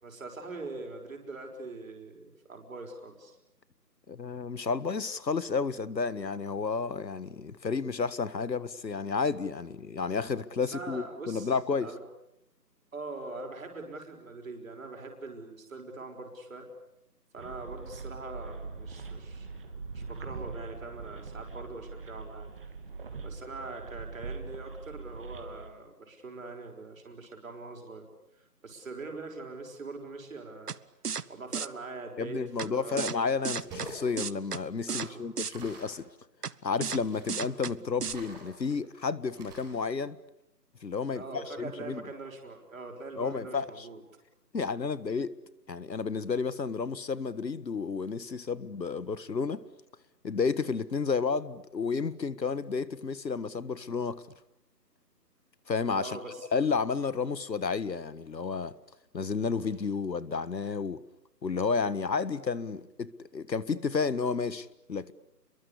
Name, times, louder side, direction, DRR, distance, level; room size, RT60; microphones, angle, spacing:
voice 1, 0.0-3.4 10.6-11.5 11.8-12.0 12.9-16.7 17.3-19.5 19.9-22.5 23.2-28.1 28.6-30.8 31.3-33.1 34.9-35.2 41.1-44.0 56.0-56.5, right 3 dB, 50° right, 5.8 m, -42 dB
voice 2, 4.1-11.9 32.2-36.1 36.6-40.2 40.8-42.0 43.2-43.9 44.5-45.3 45.7-49.6 50.2-54.2 55.7-56.2 56.5-58.7 59.1-61.0 61.4-65.1, left 5 dB, 80° left, 1.7 m, -31 dB
sound 1, 17.4-25.7, right 4 dB, 30° right, 2.9 m, -42 dB
sound 2, 30.7-30.8 31.0-31.2 31.5-31.7 32.6-32.7 33.0-33.2 33.4-33.9 34.2-34.6 34.9-35.1 35.4-35.5 36.4-36.5 36.8-37.0 37.3-37.7 38.0-38.1, right 6 dB, 65° right, 1.1 m, -33 dB
sound 3, 33.7-34.1 35.5-36.0 37.0-37.5 38.0-38.7 39.4-39.8, right 2 dB, 10° right, 4.6 m, -46 dB
30.0 x 23.0 x 8.5 m
figure-of-eight pair, 170°, 50 cm